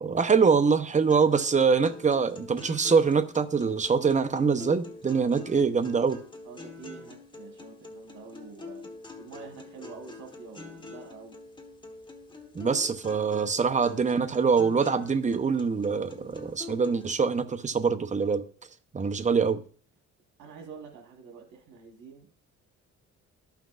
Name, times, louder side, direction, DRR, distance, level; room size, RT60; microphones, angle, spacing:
voice 1, 0.0-6.2 12.5-18.4 18.9-19.6, right 5 dB, 25° right, 0.7 m, -24 dB
sound 1, 1.1-17.1, left 3 dB, 15° left, 1.4 m, -45 dB
voice 2, 6.4-8.9 9.2-11.3 20.4-22.3, right 5 dB, 85° right, 1.5 m, -47 dB
13.5 x 5.8 x 2.5 m
cardioid pair, 90°, 30 cm